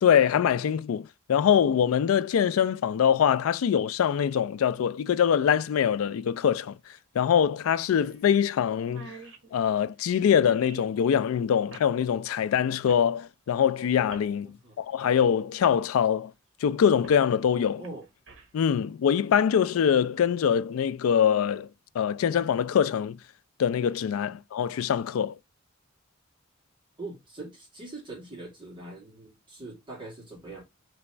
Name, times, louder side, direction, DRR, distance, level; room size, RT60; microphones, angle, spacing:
voice 1, 0.0-6.8 7.1-9.2 9.5-16.3 16.6-17.8 18.5-21.7 21.9-23.2 23.6-25.4, left 8 dB, 90° left, 0.3 m, -24 dB
sound 1, 5.1-5.2 6.9-7.0 7.4-7.5 8.0-8.2 8.5-8.6 8.8-11.0 11.7-11.9 12.9-13.1 14.1-14.3 15.1-15.2 15.6-15.8 17.0-17.2 17.6-18.6 19.2-19.4, right 3 dB, 65° right, 1.3 m, -47 dB
voice 2, 14.4-14.8 17.8-18.0 27.0-30.6, right 2 dB, 25° right, 2.1 m, -42 dB
3.4 x 3.0 x 4.3 m
head